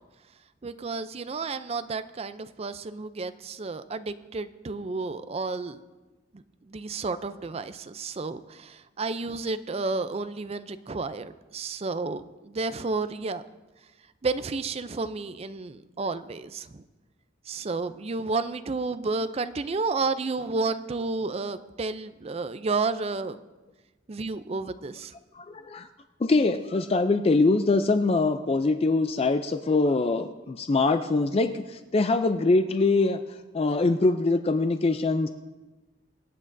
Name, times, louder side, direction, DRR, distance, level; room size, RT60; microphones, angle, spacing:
voice 1, 0.6-5.8 6.3-13.4 14.2-16.8 17.5-23.4 24.1-25.1, right 3 dB, 35° right, 12 dB, 0.4 m, -31 dB
voice 2, 25.3-25.9 26.2-33.2 33.5-35.3, left 3 dB, 30° left, 9 dB, 0.4 m, -23 dB
25.5 x 8.6 x 2.6 m, 1.1 s
head